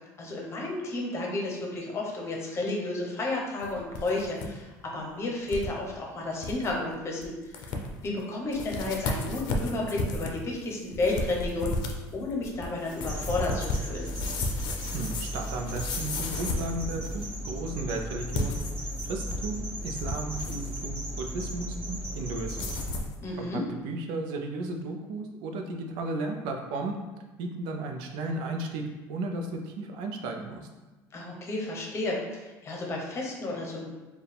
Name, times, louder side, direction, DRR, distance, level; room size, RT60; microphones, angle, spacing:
voice 1, 0.2-7.6 8.0-11.7 12.1-14.1 23.2-23.7 31.1-33.9, left 2 dB, 35° left, -1 dB, 0.9 m, -32 dB
sound 1, 3.6-4.5 4.8-4.9 5.5-5.7 6.1-6.2 6.4-6.7 7.2-7.3 7.5-8.1 8.5-17.3 18.2-19.5 19.8-20.8 22.5-23.2, left 2 dB, 65° left, 0.6 m, -34 dB
sound 2, 13.0-22.9, equal, 30° right, 1.5 m, -36 dB
voice 2, 14.9-18.6 19.0-22.8 23.4-27.0 27.4-30.7, right 2 dB, 75° right, 3 dB, 0.6 m, -34 dB
4.6 x 2.3 x 3.4 m, 1.2 s
cardioid pair, 120°, 8 cm